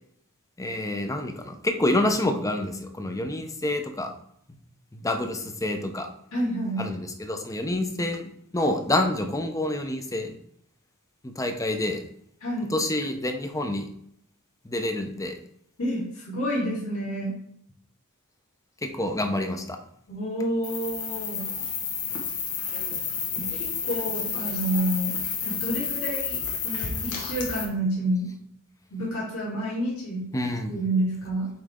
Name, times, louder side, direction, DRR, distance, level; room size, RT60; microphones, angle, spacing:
voice 1, 0.6-4.1 4.9-6.1 6.8-10.3 11.2-12.0 12.7-13.9 14.6-15.4 18.9-19.8 30.3-30.7, left 1 dB, 15° left, 5 dB, 0.6 m, -27 dB
voice 2, 6.3-6.8 12.4-12.7 15.8-17.3 20.1-21.5 23.3-25.1 25.4-28.3 28.9-30.3 30.7-31.5, right 1 dB, 70° left, -8 dB, 2.7 m, -29 dB
sound 1, 20.6-27.6, left 6 dB, 85° left, 1.3 m, -30 dB
8.7 x 3.3 x 3.7 m, 0.69 s
head